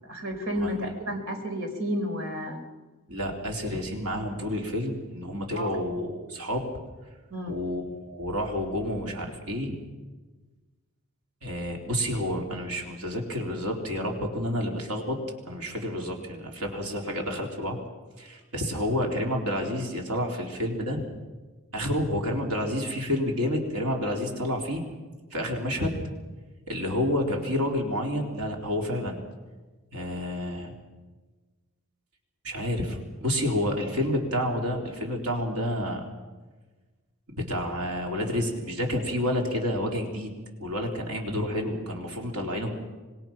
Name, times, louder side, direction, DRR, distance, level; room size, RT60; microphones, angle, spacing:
voice 1, 0.0-2.6 5.5-5.8 7.3-7.5, equal, 60° right, 4 dB, 4.5 m, -31 dB
voice 2, 0.5-0.9 3.1-6.6 7.5-9.7 11.4-15.2 15.4-17.8 18.2-21.0 21.7-24.8 25.3-25.9 26.7-29.2 29.9-30.7 32.4-36.1 37.3-40.3 40.6-42.7, left 1 dB, 85° right, 1 dB, 3.8 m, -29 dB
26.0 x 22.0 x 6.0 m, 1.3 s
head